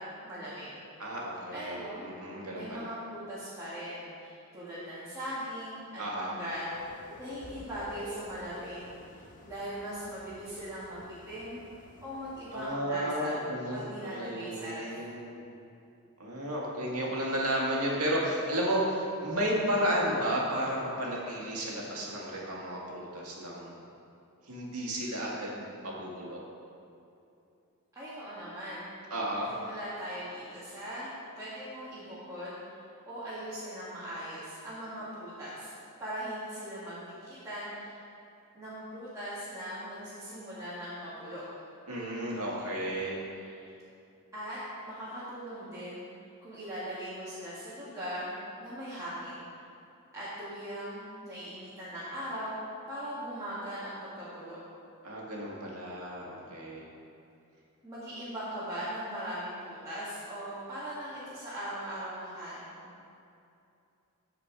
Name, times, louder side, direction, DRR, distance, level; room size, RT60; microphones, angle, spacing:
voice 1, 0.2-0.7 1.5-2.1 2.5-6.7 7.2-8.9 9.4-11.6 12.0-15.0 27.9-28.9 29.5-31.1 31.4-32.8 33.1-35.7 36.0-38.0 38.5-41.4 44.3-46.0 46.4-49.4 50.1-52.6 52.9-54.6 57.8-62.9, equal, 15° right, -12 dB, 2.3 m, -40 dB
voice 2, 1.0-2.9 6.0-6.3 12.5-15.4 16.2-23.8 24.5-26.4 29.1-29.5 41.9-43.6 55.0-56.9, equal, 75° right, -4 dB, 2.1 m, -33 dB
sound 1, 6.7-12.7, left 2 dB, 35° left, 0.8 m, -49 dB
14.5 x 5.0 x 4.8 m, 2.6 s
head